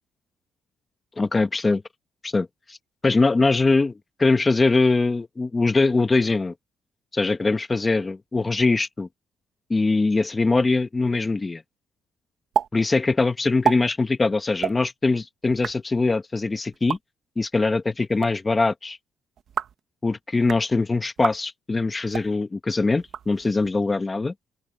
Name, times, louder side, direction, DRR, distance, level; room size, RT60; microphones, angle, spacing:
voice 1, 1.2-1.8 2.2-2.8 3.0-3.9 4.2-6.5 7.1-9.1 9.7-11.6 12.7-17.0 17.4-19.0 20.0-24.3, left 3 dB, 20° left, 1.3 m, -22 dB
sound 1, 12.5-12.7 12.9-13.0 13.5-13.8 14.5-14.7 15.4-15.7 16.7-17.0 18.0-18.3 19.4-19.8 20.3-20.6 21.2-21.4 22.0-22.3 23.0-23.7, right 8 dB, 55° right, 1.3 m, -28 dB
open air
cardioid pair, 130°, 0 cm